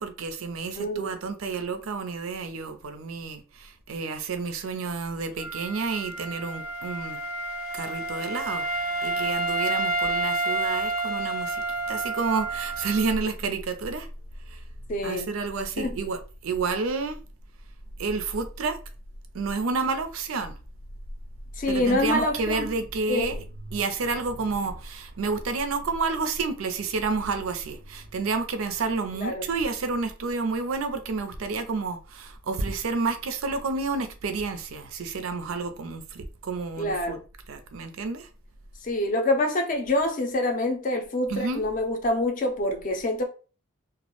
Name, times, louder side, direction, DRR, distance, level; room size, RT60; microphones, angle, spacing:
voice 1, 0.0-7.2 7.7-8.7 9.0-14.1 14.5-14.6 15.0-17.2 18.0-18.8 19.3-20.5 21.7-23.4 23.7-37.2 37.5-38.3 41.3-41.6, right 4 dB, 75° right, 0.4 m, -30 dB
voice 2, 0.8-1.1 14.9-15.3 15.8-16.0 21.6-22.7 23.1-23.4 29.2-29.5 36.8-37.2 38.8-43.3, left 1 dB, 40° left, 0.4 m, -26 dB
Wind instrument woodwind instrument, 5.4-13.1, right 2 dB, 80° left, 0.7 m, -29 dB
2.2 x 2.0 x 2.9 m
head